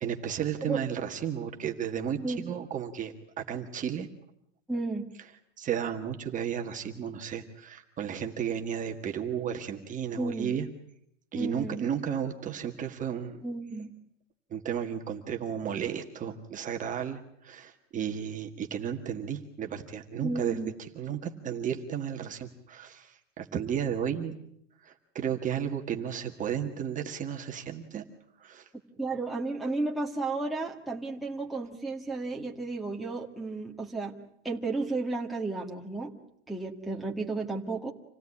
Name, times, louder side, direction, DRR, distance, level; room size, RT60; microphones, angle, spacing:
voice 1, 0.0-4.1 5.6-10.7 11.3-13.4 14.5-20.6 20.9-24.4 24.8-28.0 28.4-28.7, right 8 dB, 20° right, 3 dB, 1.7 m, -33 dB
voice 2, 4.7-5.1 10.2-10.5 11.3-11.8 13.4-13.9 20.2-20.7 29.0-34.2 34.4-36.2 36.5-37.9, right 3 dB, ahead, -2 dB, 1.8 m, -33 dB
27.0 x 17.0 x 9.8 m, 0.72 s
supercardioid pair, 155°, 36 cm